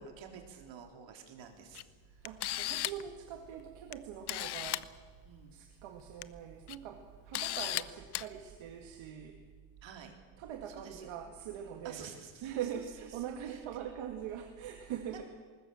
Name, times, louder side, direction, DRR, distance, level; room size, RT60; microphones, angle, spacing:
voice 1, 0.0-1.8 2.2-2.3 5.3-5.6 9.8-10.1 10.7-11.1 11.8-13.6 15.1-15.2, right 7 dB, 70° right, 4 dB, 3.6 m, -50 dB
Camera, 1.7-1.8 2.2-3.1 3.9-4.0 4.3-4.8 6.0-6.2 6.7-6.8 7.3-7.8 8.1-8.3, left 15 dB, 60° left, 0.7 m, -35 dB
voice 2, 2.2-4.9 5.5-9.4 10.4-12.0 12.4-15.2, right 9 dB, 90° right, 3 dB, 2.1 m, -42 dB
20.5 x 20.0 x 7.7 m, 1.5 s
cardioid pair, 165°, 47 cm